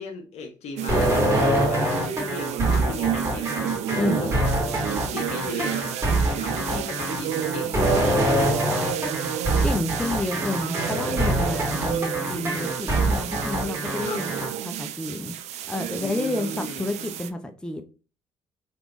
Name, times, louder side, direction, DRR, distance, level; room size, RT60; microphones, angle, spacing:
voice 1, 0.0-3.6 4.0-4.7 5.0-5.9 6.3-8.9 14.0-14.2 16.0-16.8, left 3 dB, 65° left, 1.0 m, -37 dB
sound 1, 0.8-17.3, right 11 dB, 65° right, 0.4 m, -31 dB
sound 2, 0.9-14.5, right 1 dB, 20° right, 1.8 m, -24 dB
voice 2, 4.0-4.3 9.6-14.3 14.6-16.5 16.8-17.8, left 2 dB, 5° left, 0.6 m, -30 dB
3.4 x 3.0 x 2.5 m
hypercardioid pair, 55°, 12 cm